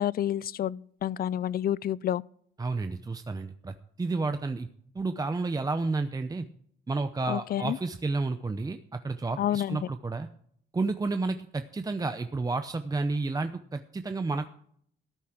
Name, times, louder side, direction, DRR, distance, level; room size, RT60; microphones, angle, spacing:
voice 1, 0.0-2.2 7.3-7.8 9.4-9.8, left 11 dB, 50° left, 0.4 m, -29 dB
voice 2, 2.6-4.7 4.9-6.5 6.9-10.3 10.7-14.5, right 3 dB, 20° right, 0.7 m, -31 dB
13.5 x 8.5 x 6.0 m
cardioid pair, 90°, 20 cm